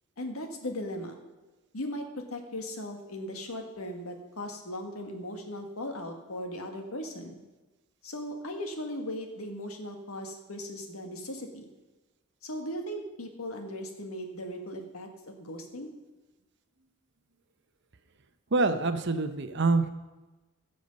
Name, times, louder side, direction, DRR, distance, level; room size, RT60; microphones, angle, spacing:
voice 1, 0.2-1.2 1.7-7.4 8.0-11.7 12.4-15.9, left 1 dB, 85° left, 4 dB, 1.7 m, -38 dB
voice 2, 18.5-19.9, right 3 dB, 55° right, 9 dB, 0.8 m, -25 dB
16.0 x 6.5 x 5.4 m, 1.2 s
head